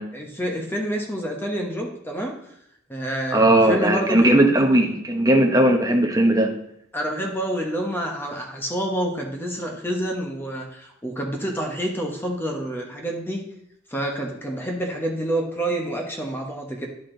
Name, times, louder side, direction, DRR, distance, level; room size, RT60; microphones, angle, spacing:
voice 1, 0.1-2.4 2.9-4.3 6.9-13.4 13.9-16.9, right 1 dB, 10° left, 1 dB, 0.9 m, -28 dB
voice 2, 3.3-6.5, right 1 dB, 15° right, 1 dB, 0.8 m, -18 dB
11.0 x 4.2 x 3.8 m, 0.74 s
head